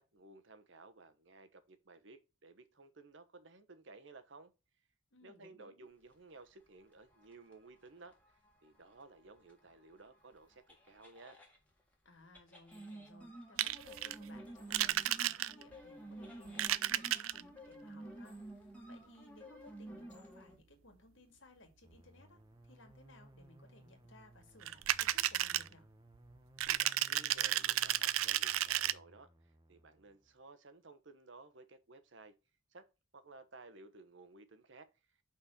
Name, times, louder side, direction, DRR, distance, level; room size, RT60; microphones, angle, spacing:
voice 1, 0.0-4.5 5.2-8.2 8.6-11.4 26.7-29.3 29.7-32.3 32.7-32.9 33.1-34.9, right 3 dB, 65° right, 1.0 m, -56 dB
voice 2, 5.1-5.8 12.0-25.9, left 2 dB, 65° left, 2.1 m, -61 dB
sound 1, 7.0-11.6 12.3-20.6, right 1 dB, 5° left, 1.8 m, -51 dB
sound 2, 13.6-14.2 14.7-15.7 16.5-17.4 24.6-25.7 26.6-28.9, right 13 dB, 85° right, 0.4 m, -33 dB
sound 3, 21.8-30.4, right 1 dB, 20° right, 0.9 m, -62 dB
5.7 x 4.4 x 6.3 m
head